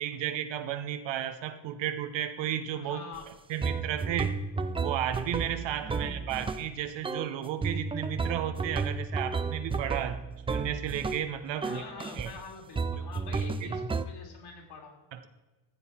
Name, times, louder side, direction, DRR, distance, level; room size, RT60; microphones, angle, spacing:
voice 1, 0.0-3.0 3.5-4.4 4.8-10.2 10.5-11.8 12.2-12.3 13.6-13.7 15.1-15.3, right 10 dB, 65° right, 9 dB, 1.1 m, -33 dB
voice 2, 2.8-3.3 5.8-6.4 11.5-14.9, left 4 dB, 55° left, 2 dB, 2.9 m, -45 dB
sound 1, 3.1-3.2 3.6-6.7 7.0-7.3 7.6-11.3 11.6-12.3 12.8-14.0, right 4 dB, 15° right, 0.3 m, -32 dB
14.5 x 7.7 x 4.3 m, 1.2 s
cardioid pair, 125°, 46 cm